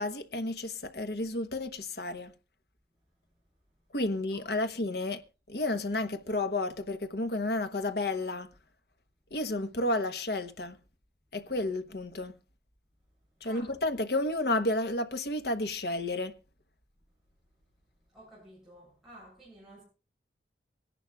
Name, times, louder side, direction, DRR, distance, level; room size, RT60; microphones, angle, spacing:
voice 1, 0.0-2.3 3.9-5.2 5.5-8.5 9.3-10.8 11.3-12.3 13.4-16.3, left 2 dB, 65° left, 1.0 m, -31 dB
voice 2, 13.4-13.7 18.1-19.8, equal, ahead, 7.5 m, -52 dB
23.5 x 11.0 x 2.3 m
head